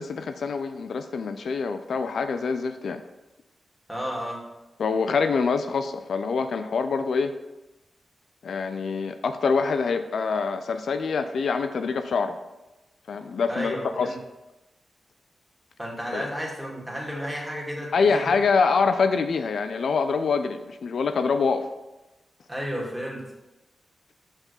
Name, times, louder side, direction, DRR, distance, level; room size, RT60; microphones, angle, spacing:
voice 1, 0.0-3.0 4.8-7.3 8.4-12.4 13.1-14.1 16.1-16.3 17.9-21.7, left 5 dB, 80° left, 9 dB, 0.4 m, -25 dB
voice 2, 3.9-4.4 13.5-14.2 15.8-18.3 22.5-23.2, equal, 5° right, -3 dB, 2.1 m, -32 dB
5.5 x 4.8 x 5.4 m, 1.0 s
cardioid pair, 65°, 0 cm